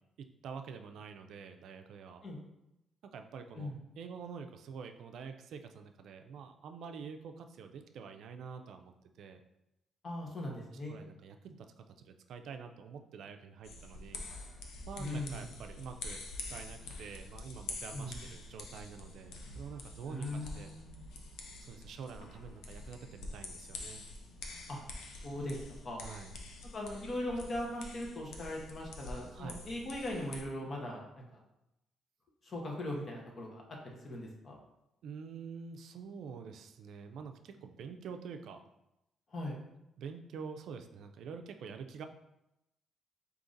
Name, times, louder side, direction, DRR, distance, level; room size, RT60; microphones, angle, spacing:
voice 1, 0.2-2.2 3.1-3.7 4.0-9.4 10.9-14.2 14.9-16.2 16.5-20.7 21.6-24.0 26.0-26.3 29.3-29.6 35.0-38.6 40.0-42.0, right 6 dB, 75° right, 6 dB, 0.4 m, -47 dB
voice 2, 10.0-11.0 15.0-15.5 17.9-18.2 20.1-21.0 24.7-24.8 25.2-26.0 26.7-31.4 32.4-34.5 39.3-39.6, left 1 dB, 45° left, -1 dB, 1.1 m, -40 dB
sound 1, 13.6-30.4, left 2 dB, 80° left, 0.6 m, -46 dB
3.8 x 2.8 x 3.9 m, 0.88 s
cardioid pair, 90°, 0 cm